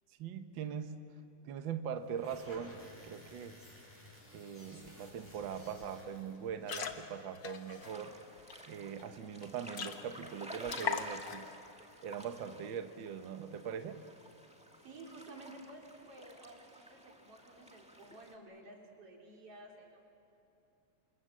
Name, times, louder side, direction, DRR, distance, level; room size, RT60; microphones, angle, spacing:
voice 1, 0.2-1.0 1.4-2.8 3.0-3.6 4.3-8.1 8.7-11.5 12.0-14.0, right 7 dB, 70° right, 8 dB, 1.1 m, -41 dB
sound 1, 2.0-6.5, left 1 dB, 15° left, 6.2 m, -55 dB
sound 2, 4.8-4.9 5.2-5.5 5.8-6.0 6.5-8.5 9.0-9.1 9.4-9.5 9.7-10.3 10.6-11.5, left 7 dB, 50° left, 1.4 m, -40 dB
sound 3, 7.8-18.3, equal, 5° right, 0.8 m, -53 dB
voice 2, 14.8-20.0, right 2 dB, 50° right, 0 dB, 4.3 m, -53 dB
28.5 x 27.0 x 7.4 m, 2.8 s
omnidirectional pair, 3.5 m